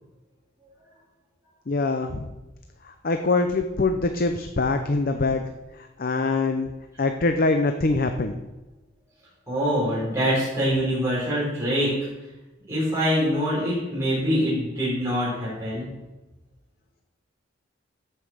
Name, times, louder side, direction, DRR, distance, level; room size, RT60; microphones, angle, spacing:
voice 1, 1.7-2.3 3.0-5.4 6.0-6.7 7.0-8.4, left 3 dB, 45° left, 6 dB, 0.6 m, -23 dB
voice 2, 9.5-11.9 12.7-15.9, equal, 15° right, -9 dB, 4.8 m, -24 dB
13.5 x 5.7 x 6.3 m, 1.1 s
head